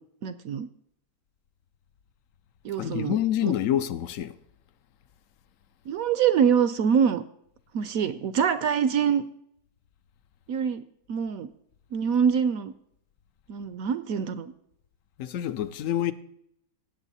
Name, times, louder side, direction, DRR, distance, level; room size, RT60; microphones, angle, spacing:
voice 1, 0.2-0.7 2.6-3.2 3.4-3.5 5.9-7.2 7.7-9.3 10.5-10.8 11.1-11.5 11.9-12.7 13.5-14.5, right 7 dB, 70° right, 0.9 m, -24 dB
voice 2, 2.8-4.4 15.2-16.1, left 11 dB, 70° left, 0.8 m, -27 dB
17.0 x 7.7 x 4.1 m
omnidirectional pair, 1.8 m